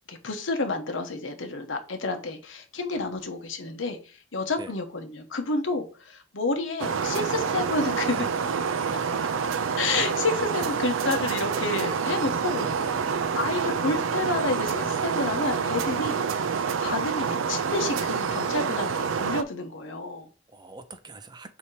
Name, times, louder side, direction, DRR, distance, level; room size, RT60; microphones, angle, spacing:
voice 1, 0.1-8.3 9.8-12.7 13.3-20.3, left 3 dB, 80° left, 1.2 m, -30 dB
sound 1, 6.8-19.4, right 6 dB, 90° right, 0.5 m, -27 dB
voice 2, 12.4-13.2 20.5-21.6, right 3 dB, 20° right, 0.5 m, -44 dB
7.2 x 2.9 x 4.8 m
head